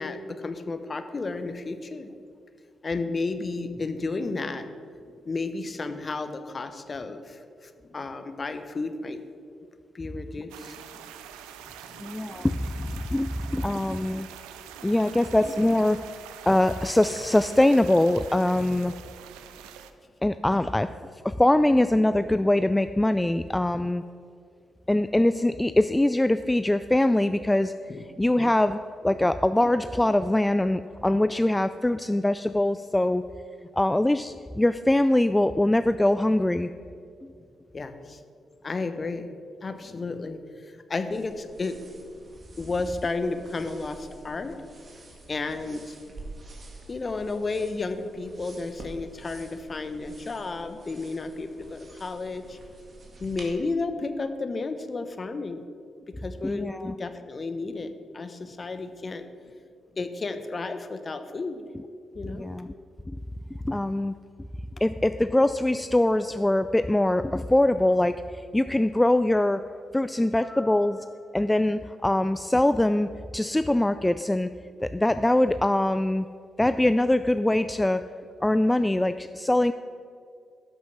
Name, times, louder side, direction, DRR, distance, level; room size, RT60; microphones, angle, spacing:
voice 1, 0.0-2.1 2.8-4.6 5.1-9.2 9.9-10.8 11.9-12.0 13.5-13.9 27.9-28.0 37.7-38.2 38.6-39.3 39.6-41.8 42.6-44.6 45.3-46.0 46.9-52.6 53.2-55.6 56.2-59.2 59.9-61.7 62.1-62.5, left 3 dB, 40° left, 9 dB, 1.0 m, -32 dB
sound 1, 10.5-19.9, right 9 dB, 80° right, 0.5 m, -45 dB
voice 2, 12.0-14.3 14.8-16.0 16.5-18.9 20.2-20.9 21.2-24.0 24.9-27.7 28.2-33.2 33.7-36.7 56.4-56.9 62.3-62.7 63.1-63.2 63.6-64.1 64.8-69.6 69.9-74.5 74.8-76.3 76.6-78.0 78.4-79.7, left 1 dB, 15° left, 11 dB, 0.3 m, -23 dB
sound 2, 41.1-53.5, right 2 dB, 45° right, 2.1 m, -48 dB
12.0 x 6.1 x 5.9 m, 2.3 s
hypercardioid pair, 40°, 0 cm